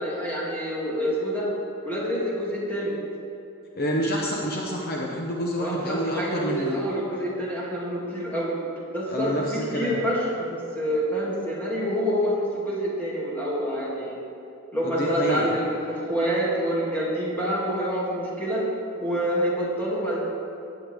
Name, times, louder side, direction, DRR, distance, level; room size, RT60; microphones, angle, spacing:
voice 1, 0.0-1.5 1.8-2.9 5.6-8.6 8.9-14.2 14.7-18.6 19.0-20.2, equal, 10° left, -7 dB, 2.8 m, -27 dB
voice 2, 3.7-6.8 9.1-10.0 14.8-15.5, equal, 45° left, -2 dB, 1.1 m, -28 dB
16.5 x 9.9 x 3.7 m, 2.8 s
head